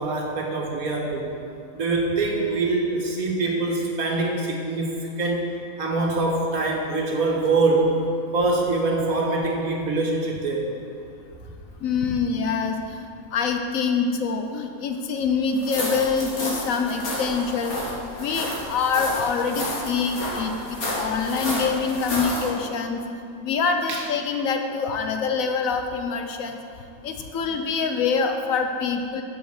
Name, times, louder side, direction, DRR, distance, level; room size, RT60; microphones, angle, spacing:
voice 1, 0.0-1.3 1.7-5.5 5.8-7.9 8.3-10.7 23.9-24.1, right 3 dB, 85° right, 0 dB, 1.8 m, -24 dB
voice 2, 11.8-23.0 23.4-26.6 27.0-29.2, left 5 dB, 75° left, 5 dB, 1.2 m, -25 dB
sound 1, 15.6-22.5, left 1 dB, 90° left, 2.2 m, -30 dB
8.5 x 6.3 x 6.5 m, 2.4 s
omnidirectional pair, 1.5 m